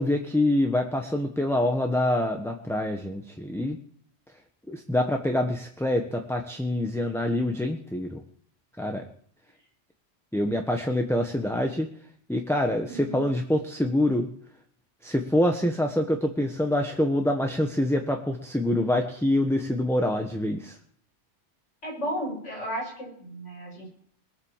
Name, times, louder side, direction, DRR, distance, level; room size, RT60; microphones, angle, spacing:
voice 1, 0.0-3.8 4.7-8.2 8.8-9.0 10.3-11.9 12.3-14.3 15.0-20.8, left 1 dB, ahead, 3 dB, 1.2 m, -25 dB
voice 2, 12.9-13.2 21.8-23.9, equal, 75° left, -2 dB, 7.8 m, -34 dB
21.0 x 8.0 x 7.3 m, 0.62 s
omnidirectional pair, 1.2 m